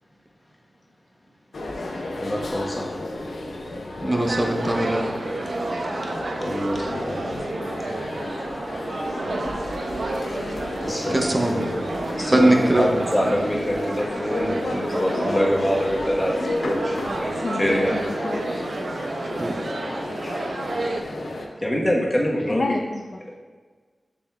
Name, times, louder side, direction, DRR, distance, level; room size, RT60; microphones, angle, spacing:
sound 1, 1.5-21.5, left 2 dB, 85° left, 0.8 m, -32 dB
voice 1, 2.2-2.9 3.6-3.7 6.3-7.2 10.8-11.7 12.2-18.0 20.2-20.4 21.6-22.7, equal, 20° left, -3 dB, 1.2 m, -25 dB
voice 2, 4.0-5.0 11.1-11.8 12.3-12.9 19.4-19.5, right 1 dB, 30° right, 1 dB, 0.7 m, -20 dB
sound 2, 4.2-21.0, right 2 dB, 70° right, 0.6 m, -31 dB
voice 3, 17.4-18.7 22.5-23.2, left 2 dB, 55° left, 2 dB, 0.5 m, -29 dB
7.2 x 6.5 x 2.4 m, 1.4 s
wide cardioid pair, 110°, 0 cm